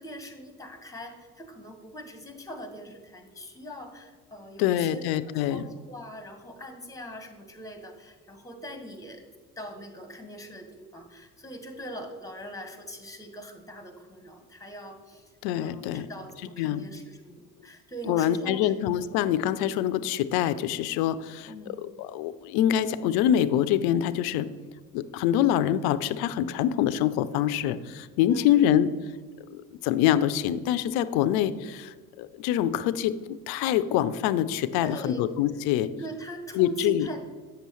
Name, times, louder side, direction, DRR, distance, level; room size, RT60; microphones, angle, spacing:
voice 1, 0.0-9.2 9.6-15.3 15.6-18.7 21.5-21.8 28.3-28.6 34.7-35.3 36.0-37.2, right 1 dB, 10° left, 6 dB, 1.2 m, -42 dB
voice 2, 4.6-5.7 15.4-16.1 16.6-16.8 18.1-21.5 22.0-24.5 24.9-28.9 29.5-33.1 33.5-35.9 36.5-37.1, left 11 dB, 65° left, 14 dB, 0.5 m, -25 dB
7.9 x 6.8 x 3.1 m, 1.5 s
hypercardioid pair, 60°, 41 cm